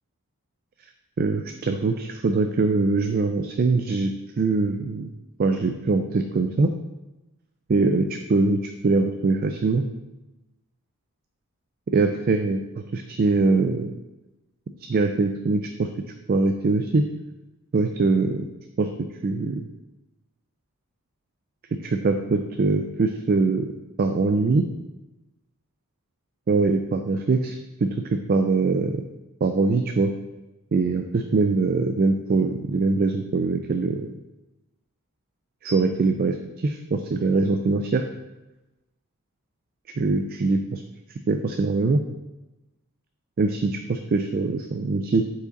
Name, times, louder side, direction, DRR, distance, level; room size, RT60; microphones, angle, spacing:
voice 1, 1.2-4.1 4.4-5.1 5.4-6.7 7.7-9.8 11.9-14.0 14.9-15.9 16.3-17.0 17.7-18.4 18.8-18.9 19.2-19.7 21.8-23.7 24.0-24.7 26.5-27.6 27.8-29.0 29.4-30.1 30.7-34.1 35.6-38.0 40.0-40.8 41.3-42.0 43.4-45.3, right 3 dB, 45° right, 6 dB, 0.4 m, -22 dB
6.9 x 4.8 x 4.0 m, 1.0 s
head